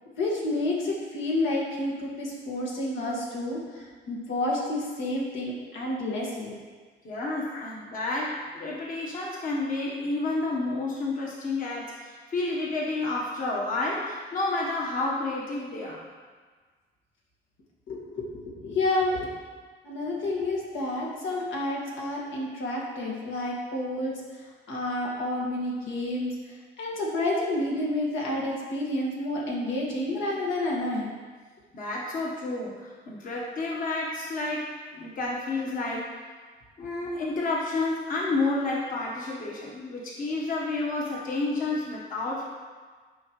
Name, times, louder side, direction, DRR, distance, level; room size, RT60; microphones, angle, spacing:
voice 1, 0.2-6.5 7.5-7.6 17.9-19.3 19.8-24.1 24.7-26.3 26.8-31.1, left 1 dB, 85° left, -3 dB, 1.9 m, -29 dB
voice 2, 7.0-16.0 31.7-36.2 36.8-42.4, left 2 dB, 45° left, -4 dB, 1.3 m, -30 dB
12.0 x 5.1 x 3.1 m, 1.5 s
cardioid pair, 150°, 19 cm